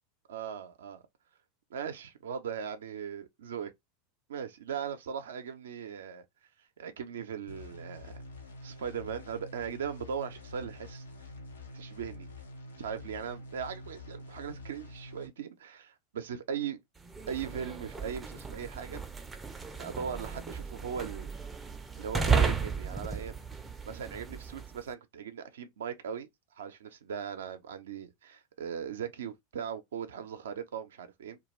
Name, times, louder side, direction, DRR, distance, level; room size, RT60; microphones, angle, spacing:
voice 1, 0.3-1.0 1.7-3.7 4.3-6.2 6.8-8.2 8.6-11.0 11.7-12.3 12.8-16.8 17.3-19.0 19.8-21.4 22.0-23.3 23.8-26.3 26.6-31.4, right 7 dB, 75° right, 0.5 m, -39 dB
sound 1, 7.5-15.3, left 2 dB, 85° left, 0.6 m, -47 dB
sound 2, 17.0-24.8, right 5 dB, 15° right, 0.4 m, -34 dB
2.2 x 2.2 x 3.0 m
hypercardioid pair, 85°, 0 cm